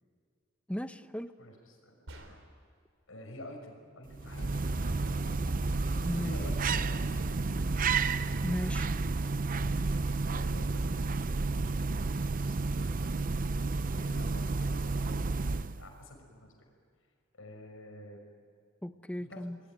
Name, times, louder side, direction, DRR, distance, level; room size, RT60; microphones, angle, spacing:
voice 1, 0.7-1.3 6.0-6.3 8.4-8.9 18.8-19.6, equal, 5° left, 10 dB, 0.8 m, -36 dB
voice 2, 1.4-2.0 2.2-2.4 3.1-5.2 6.0-7.6 9.6-9.8 10.2-16.5 17.3-18.2 19.2-19.4, left 1 dB, 90° left, 3 dB, 6.0 m, -49 dB
sound 1, 2.1-2.8, right 1 dB, 80° right, 4.0 m, -49 dB
sound 2, 4.1-15.9, right 3 dB, 45° right, 0.6 m, -31 dB
sound 3, 4.2-13.7, equal, 70° left, 4.9 m, -47 dB
27.5 x 21.5 x 9.3 m, 2.3 s
head